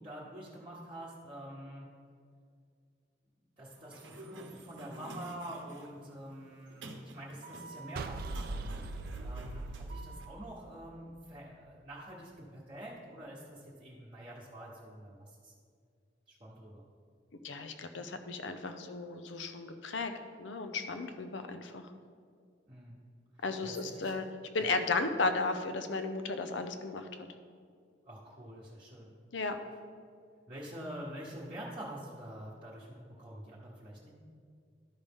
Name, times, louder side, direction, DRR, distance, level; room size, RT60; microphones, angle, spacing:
voice 1, 0.0-1.9 3.6-8.7 9.2-15.5 16.3-16.8 22.7-23.0 23.6-24.2 24.6-24.7 28.1-29.1 30.5-34.1, right 1 dB, 30° right, -7 dB, 1.1 m, -46 dB
Sliding door, 3.7-10.2, right 2 dB, 90° right, 0.8 m, -50 dB
sound 1, 8.0-11.2, right 2 dB, 55° right, 0.4 m, -40 dB
voice 2, 17.4-20.1 20.4-21.8 23.4-24.3 24.5-27.1 29.3-29.6, left 3 dB, 80° left, 8 dB, 0.6 m, -34 dB
12.5 x 5.4 x 3.6 m, 2.2 s
head